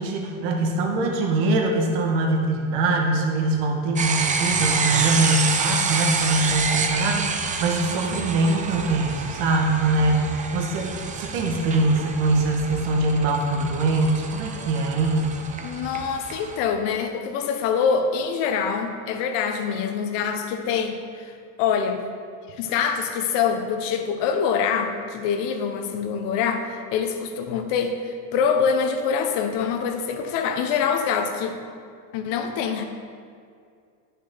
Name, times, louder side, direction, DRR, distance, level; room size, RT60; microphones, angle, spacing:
voice 1, 0.0-15.4, right 2 dB, 65° right, 1 dB, 1.7 m, -23 dB
sound 1, 4.0-16.6, right 5 dB, 15° right, 0.5 m, -28 dB
voice 2, 15.6-21.2 21.6-22.0 22.6-31.6 32.1-32.8, left 6 dB, 60° left, 6 dB, 1.2 m, -25 dB
11.0 x 6.3 x 5.6 m, 2.3 s
cardioid pair, 150°, 47 cm